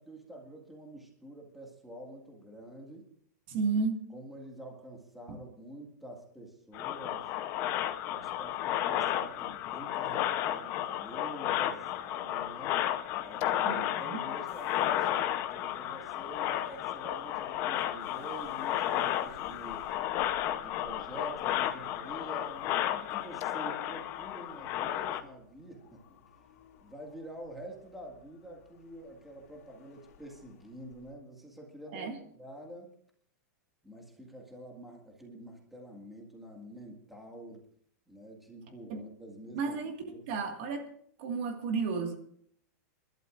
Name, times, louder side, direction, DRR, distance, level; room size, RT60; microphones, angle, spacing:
voice 1, 0.0-3.1 4.1-7.3 7.9-12.8 13.2-19.9 20.6-26.0 26.8-32.9 33.8-37.6 38.1-39.8 40.0-40.2, right 1 dB, ahead, 1.9 m, -47 dB
voice 2, 3.5-4.0 5.3-5.4 13.6-14.2 31.9-32.2 38.9-39.0 39.5-40.9 41.2-42.2, right 4 dB, 40° right, 1.8 m, -33 dB
sound 1, 6.7-25.2, left 12 dB, 25° left, 0.7 m, -33 dB
sound 2, 11.8-31.1, left 7 dB, 50° left, 2.5 m, -57 dB
29.5 x 12.0 x 2.5 m
supercardioid pair, 175°, 9 cm